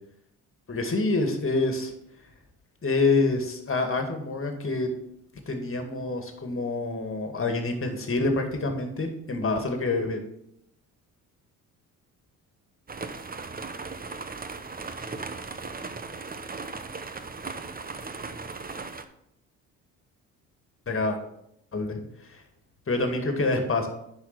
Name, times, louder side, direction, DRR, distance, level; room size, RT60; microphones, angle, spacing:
voice 1, 0.7-1.9 2.8-4.9 5.5-10.2 20.9-21.2 21.7-22.0 22.3-22.4 22.9-23.9, left 3 dB, 30° left, 5 dB, 2.2 m, -27 dB
sound 1, 12.9-19.0, right 4 dB, 20° right, 0.9 m, -37 dB
10.5 x 4.4 x 6.1 m, 0.76 s
hypercardioid pair, 50°, 43 cm